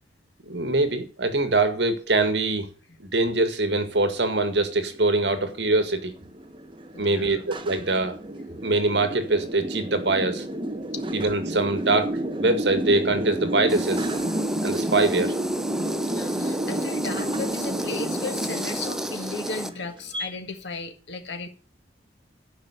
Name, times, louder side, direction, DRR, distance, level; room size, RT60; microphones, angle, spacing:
voice 1, 0.4-2.7 3.0-6.1 7.0-8.2 8.6-10.5 11.1-14.1 14.6-15.3, right 2 dB, 75° right, 2.0 m, -23 dB
sound 1, 3.9-20.3, right 1 dB, 30° right, 1.3 m, -31 dB
voice 2, 6.9-7.5 10.9-11.0 16.0-21.5, left 3 dB, 85° left, 1.8 m, -35 dB
sound 2, 13.7-19.7, equal, 5° right, 0.7 m, -33 dB
12.0 x 5.5 x 8.3 m
head